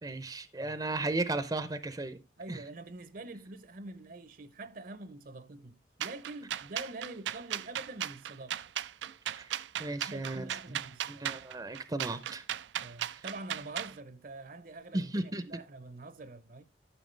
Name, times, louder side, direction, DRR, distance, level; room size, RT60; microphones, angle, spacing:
voice 1, 0.0-2.2 2.5-2.6 9.4-9.5 9.8-10.8 11.1-12.4 14.9-15.5, right 2 dB, 20° right, 0.6 m, -35 dB
voice 2, 2.4-8.6 9.9-11.3 12.8-16.6, right 2 dB, 50° right, 0.8 m, -45 dB
sound 1, 6.0-13.9, right 11 dB, 85° right, 0.4 m, -37 dB
13.0 x 5.9 x 3.3 m
head